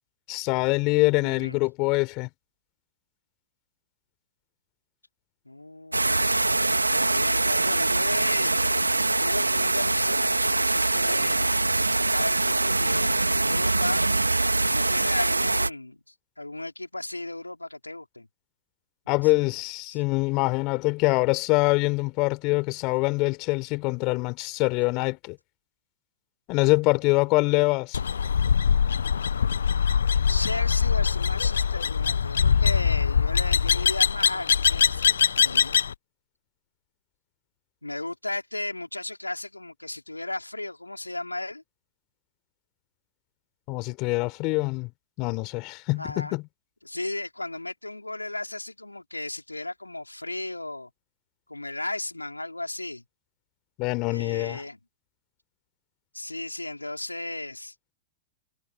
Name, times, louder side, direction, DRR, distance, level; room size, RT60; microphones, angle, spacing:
voice 1, 0.3-2.3 19.1-25.4 26.5-28.0 43.7-44.9 45.2-46.4 53.8-54.6, left 26 dB, 40° left, 3.8 m, -24 dB
voice 2, 1.2-1.6 5.4-6.6 6.9-8.6 9.0-11.5 11.9-14.0 14.7-18.3 19.2-19.3 19.9-20.0 30.3-35.1 35.4-35.8 37.8-41.6 46.0-46.4 46.8-50.9 51.5-53.0 54.1-54.8 56.1-57.7, left 2 dB, 90° left, 4.1 m, -35 dB
sound 1, 5.9-15.7, right 2 dB, 85° right, 2.6 m, -23 dB
sound 2, 27.9-35.9, left 7 dB, 70° left, 0.7 m, -23 dB
figure-of-eight pair, 100°, 0 cm